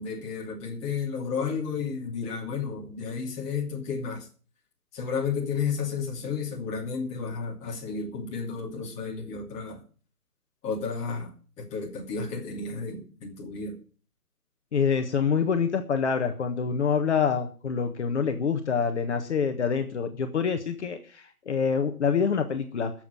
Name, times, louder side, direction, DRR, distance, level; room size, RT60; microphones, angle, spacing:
voice 1, 0.0-4.3 4.9-9.8 10.6-11.3 11.7-13.7, left 5 dB, 15° left, 2.8 m, -32 dB
voice 2, 14.7-22.9, left 6 dB, 50° left, 1.5 m, -26 dB
12.0 x 7.5 x 9.7 m
hypercardioid pair, 155°, 46 cm